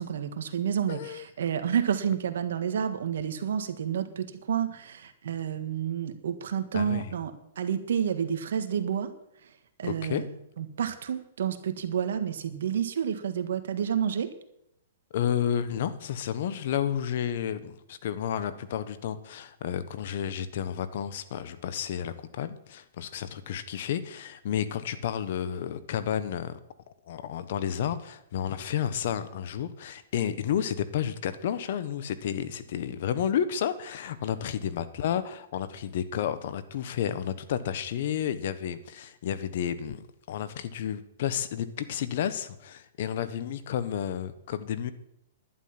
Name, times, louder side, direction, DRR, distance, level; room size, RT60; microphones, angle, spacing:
voice 1, 0.0-9.1 9.8-10.2 10.6-14.3, right 8 dB, 75° right, 9 dB, 1.5 m, -30 dB
voice 2, 0.9-1.2 6.7-7.1 9.8-10.2 15.1-26.6 27.1-44.9, left 9 dB, 60° left, 13 dB, 1.2 m, -31 dB
11.5 x 11.0 x 5.9 m, 0.78 s
hypercardioid pair, 130°, 0 cm